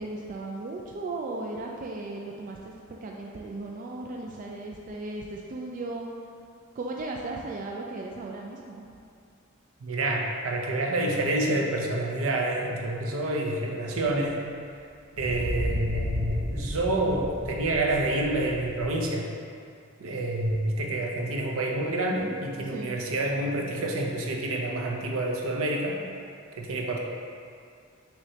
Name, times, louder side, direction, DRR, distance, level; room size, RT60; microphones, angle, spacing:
voice 1, 0.0-6.1 6.7-8.9 22.7-23.1, right 2 dB, 40° right, 0 dB, 0.3 m, -36 dB
voice 2, 9.8-14.4 15.2-19.3 20.0-26.0 26.6-27.0, right 1 dB, 75° right, 0 dB, 0.6 m, -28 dB
sound 1, 15.1-18.9, equal, 45° left, 1.2 m, -33 dB
6.2 x 3.1 x 2.8 m, 2.3 s
head